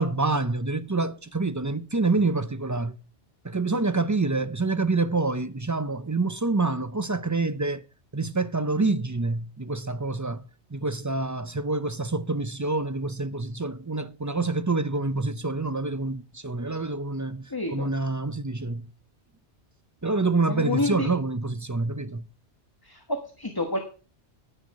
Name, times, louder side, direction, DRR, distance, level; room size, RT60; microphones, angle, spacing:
voice 1, 0.0-3.0 3.4-7.8 8.1-18.9 20.0-22.3, right 3 dB, 20° right, 0.5 m, -27 dB
voice 2, 17.5-17.9 20.5-21.1 22.8-23.8, left 2 dB, 20° left, 1.3 m, -29 dB
10.5 x 10.0 x 4.8 m
omnidirectional pair, 1.2 m